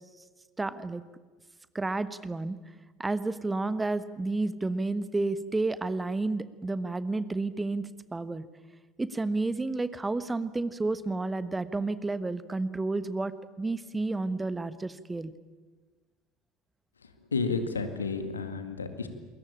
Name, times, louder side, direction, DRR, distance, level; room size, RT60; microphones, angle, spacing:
voice 1, 0.6-1.0 1.7-2.6 3.0-8.4 9.0-13.3 13.6-15.3, right 2 dB, 15° right, 14 dB, 1.3 m, -31 dB
voice 2, 17.3-19.1, left 4 dB, 80° left, 8 dB, 2.0 m, -31 dB
28.0 x 22.0 x 8.9 m, 1.4 s
figure-of-eight pair, 65°, 0 cm